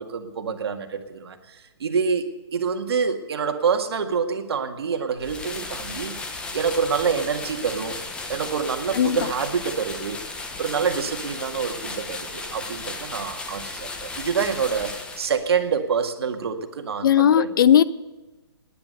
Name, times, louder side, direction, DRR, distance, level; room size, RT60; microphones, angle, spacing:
voice 1, 0.0-6.1 6.5-8.0 8.3-10.2 10.6-17.5, right 6 dB, 70° right, 2.0 m, -26 dB
sound 1, 5.2-15.6, left 3 dB, 5° left, 1.0 m, -35 dB
voice 2, 8.9-9.3 17.0-17.8, left 9 dB, 50° left, 0.6 m, -17 dB
19.0 x 10.0 x 6.7 m
hypercardioid pair, 160°, 14 cm